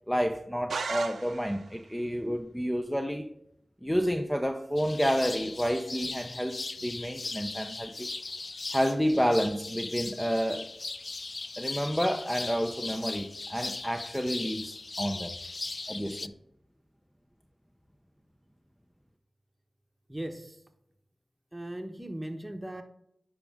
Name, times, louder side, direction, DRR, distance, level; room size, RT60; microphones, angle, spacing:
voice 1, 0.1-3.3 3.8-8.1 8.7-10.7 11.6-15.3 15.9-16.3, equal, 5° left, 5 dB, 0.6 m, -30 dB
sound 1, 0.7-1.8, right 4 dB, 90° right, 0.5 m, -35 dB
sound 2, 4.8-16.3, left 3 dB, 55° left, 0.3 m, -38 dB
voice 2, 20.1-20.6 21.5-22.8, right 1 dB, 20° right, 6 dB, 1.2 m, -38 dB
9.7 x 5.1 x 3.7 m, 0.76 s
cardioid pair, 40°, 0 cm